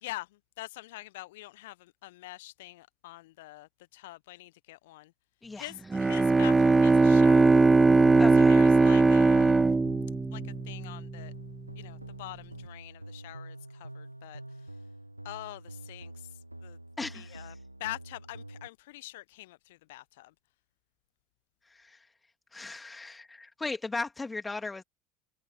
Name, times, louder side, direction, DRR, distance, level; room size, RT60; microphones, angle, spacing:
voice 1, 0.6-5.1 5.6-7.7 8.3-9.5 10.3-11.3 11.8-14.4 15.2-16.3 16.6-16.8 17.1-17.5 17.8-20.3, left 18 dB, 65° left, 1.1 m, -44 dB
Bowed string instrument, 5.9-11.1, right 3 dB, 15° right, 0.5 m, -20 dB
sound 1, 8.0-18.7, right 1 dB, 90° right, 1.4 m, -46 dB
voice 2, 8.2-8.6 17.0-17.5 21.7-22.0 22.5-24.8, left 3 dB, 15° left, 3.0 m, -37 dB
figure-of-eight pair, 65°, 0 cm